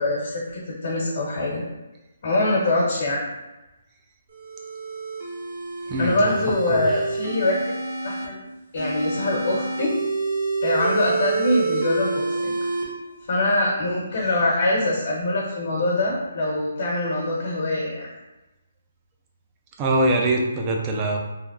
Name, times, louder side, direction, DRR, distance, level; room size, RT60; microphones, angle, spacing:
voice 1, 0.0-1.6 2.2-3.2 6.0-7.5 8.0-8.4 8.7-10.0 10.6-12.5 13.3-18.1, left 2 dB, 60° left, -4 dB, 1.0 m, -23 dB
sound 1, 4.3-8.3 8.8-12.8, right 3 dB, 50° right, 0.8 m, -28 dB
voice 2, 5.9-6.3 6.7-6.8 19.8-21.2, right 1 dB, 20° right, 1 dB, 0.4 m, -23 dB
3.3 x 2.1 x 2.4 m, 1.0 s
hypercardioid pair, 165°, 0 cm